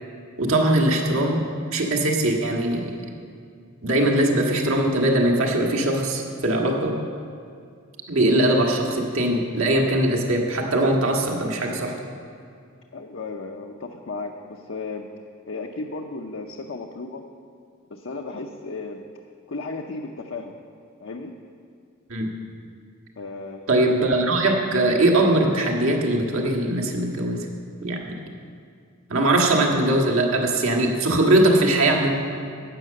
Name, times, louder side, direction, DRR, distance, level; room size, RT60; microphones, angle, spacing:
voice 1, 0.4-1.4 1.7-2.9 3.8-7.0 8.1-11.9 22.1-22.3 23.7-27.4 27.8-28.1 29.1-32.1, right 1 dB, 75° right, 0 dB, 1.7 m, -21 dB
voice 2, 12.9-15.1 15.5-17.2 17.9-19.0 19.5-20.5 21.0-21.3 23.2-23.6, left 3 dB, 60° left, 2 dB, 0.7 m, -34 dB
12.5 x 8.6 x 6.5 m, 2.3 s
head